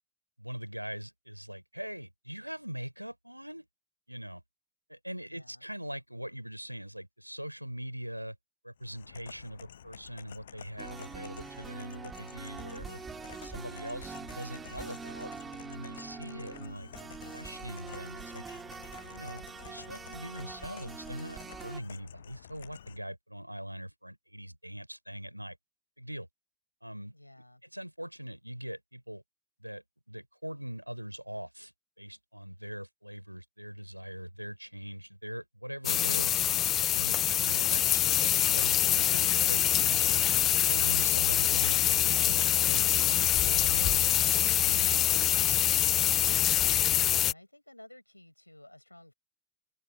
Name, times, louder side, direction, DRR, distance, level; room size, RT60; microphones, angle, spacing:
voice 1, 0.4-3.7 4.1-4.4 4.9-8.4 8.6-13.0 13.4-15.3 15.6-18.4 19.1-25.6 26.0-26.3 26.8-27.1 27.7-29.2 29.6-31.7 32.0-36.4 36.9-45.0 45.3-45.9, equal, 90° right, 4.7 m, -42 dB
voice 2, 5.3-5.6 21.7-22.0 27.1-27.6 47.2-49.1, left 1 dB, 85° left, 7.0 m, -54 dB
sound 1, 8.8-23.0, left 9 dB, 65° left, 7.6 m, -51 dB
sound 2, 10.8-21.8, right 5 dB, 15° right, 2.7 m, -44 dB
sound 3, 35.8-47.3, left 12 dB, 30° left, 0.5 m, -25 dB
figure-of-eight pair, 90°, 0 cm